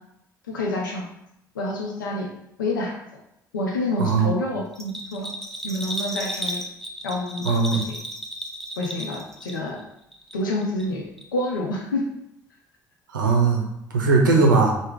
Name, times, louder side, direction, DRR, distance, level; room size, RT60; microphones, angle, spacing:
voice 1, 0.5-1.1 1.5-2.3 2.6-3.0 3.5-5.3 5.6-6.6 7.0-8.0 8.8-9.8 10.3-12.1 14.2-14.4, left 1 dB, 85° left, -1 dB, 0.5 m, -28 dB
Bell, 4.7-9.8 10.1-10.9 11.2-11.3, equal, 5° left, 0.7 m, -33 dB
voice 2, 7.4-7.8 13.1-13.7 13.9-14.7, right 4 dB, 85° right, 0 dB, 0.5 m, -19 dB
3.2 x 2.0 x 3.6 m, 0.79 s
figure-of-eight pair, 50°, 10 cm